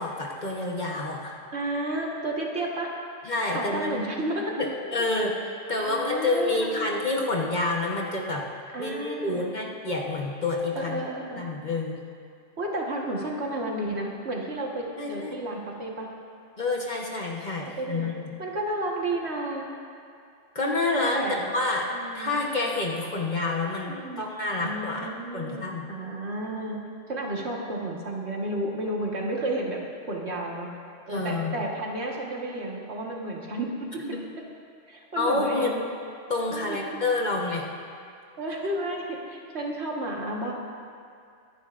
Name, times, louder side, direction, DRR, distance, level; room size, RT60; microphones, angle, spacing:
voice 1, 0.0-1.4 3.3-4.0 4.6-5.4 5.7-8.4 8.8-11.0 11.4-12.0 15.0-15.3 16.6-18.3 20.5-25.0 25.3-25.9 31.1-31.6 35.2-35.8 36.3-37.7, left 2 dB, 40° left, -2 dB, 1.2 m, -28 dB
voice 2, 1.5-2.9 3.5-4.5 5.8-6.9 8.7-9.4 10.7-11.4 12.6-16.1 17.8-18.1 18.4-19.7 21.1-21.4 21.9-22.4 23.9-24.2 24.6-26.8 27.1-29.8 30.1-30.7 31.1-33.9 34.9-35.8 36.5-36.8 38.4-40.5, right 1 dB, 55° right, -2 dB, 1.7 m, -32 dB
22.5 x 10.5 x 2.5 m, 2.3 s
omnidirectional pair, 1.3 m